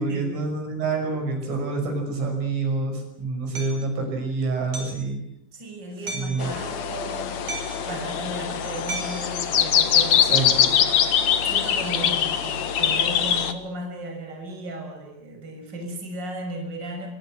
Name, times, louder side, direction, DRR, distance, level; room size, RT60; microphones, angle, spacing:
voice 1, 0.0-5.2 6.1-6.6 10.2-10.7, right 3 dB, 70° right, 4 dB, 8.3 m, -27 dB
Hammer, 3.5-3.8 4.7-5.0 6.1-6.4 7.5-7.9 8.9-9.3, right 3 dB, 40° right, 6.8 m, -34 dB
voice 2, 5.5-7.4 7.8-10.9 11.5-17.1, right 1 dB, 20° right, 3 dB, 6.4 m, -35 dB
sound 1, 6.4-13.5, left 8 dB, 85° left, 1.5 m, -23 dB
25.5 x 23.5 x 7.7 m, 0.75 s
omnidirectional pair, 5.9 m